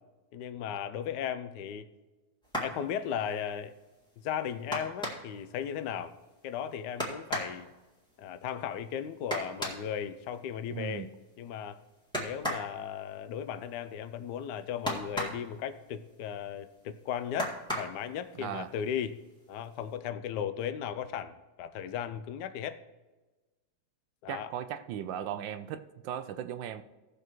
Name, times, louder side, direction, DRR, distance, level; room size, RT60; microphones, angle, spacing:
voice 1, 0.3-1.9 2.6-3.7 4.2-6.1 6.4-7.7 8.2-11.1 11.4-11.8 12.2-19.2 19.5-22.8 24.2-24.5, left 9 dB, 70° left, 11 dB, 1.1 m, -36 dB
sound 1, 2.4-2.8 4.7-5.4 7.0-7.6 9.3-9.9 12.1-12.7 14.8-15.5 17.4-18.0 19.1-19.2 19.6-19.8, equal, ahead, 1.7 m, -34 dB
voice 2, 10.7-11.1 18.4-18.7 24.3-26.8, right 10 dB, 75° right, 11 dB, 1.3 m, -37 dB
17.0 x 6.7 x 3.0 m, 1.2 s
omnidirectional pair, 2.2 m